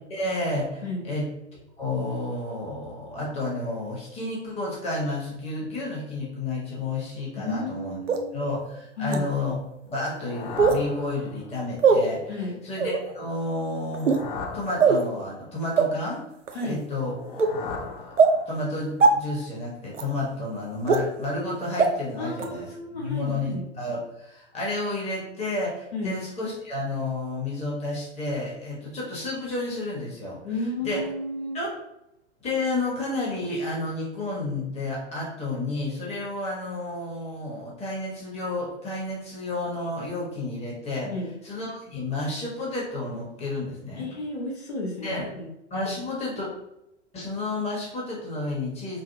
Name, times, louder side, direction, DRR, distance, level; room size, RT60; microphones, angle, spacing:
voice 1, 0.1-1.3 1.8-8.0 8.3-9.5 9.9-12.3 12.6-16.2 16.6-17.2 17.5-17.9 18.5-22.7 23.0-30.4 30.8-31.0 31.5-31.7 32.4-41.1 41.4-44.1 45.0-45.3 45.7-46.5 47.1-49.0, left 2 dB, 15° left, -4 dB, 1.1 m, -31 dB
voice 2, 7.4-8.6 9.0-9.2 12.3-12.5 16.5-16.8 22.2-23.6 25.9-26.1 30.4-31.6 41.0-41.3 44.0-45.4, left 1 dB, 60° left, -2 dB, 1.2 m, -32 dB
sound 1, 8.1-8.2 9.1-9.2 10.6-10.8 11.8-12.0 12.8-13.0 13.9-14.2 14.8-15.0 15.8-15.9 16.5-16.7 17.4-17.5 18.2-18.3 19.0-19.1 19.9-20.0 20.9-21.0 21.8-21.9 22.4-22.5, right 5 dB, 85° right, 0.5 m, -19 dB
sound 2, 9.9-11.7 13.6-15.5 16.9-18.8, left 4 dB, 45° left, 0.7 m, -38 dB
5.1 x 2.0 x 2.6 m, 0.86 s
figure-of-eight pair, 95°, 36 cm